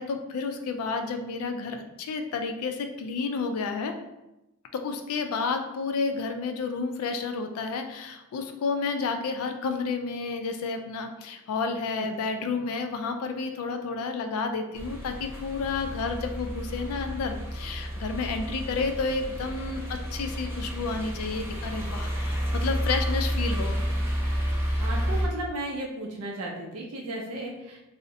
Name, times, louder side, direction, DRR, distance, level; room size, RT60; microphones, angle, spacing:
voice 1, 0.0-3.9 4.7-23.8, left 4 dB, 75° left, 6 dB, 0.3 m, -31 dB
sound 1, 14.7-25.3, equal, 10° right, 0.4 m, -30 dB
voice 2, 24.8-27.8, right 1 dB, 80° right, 0 dB, 0.4 m, -35 dB
2.6 x 2.0 x 2.5 m, 0.95 s
head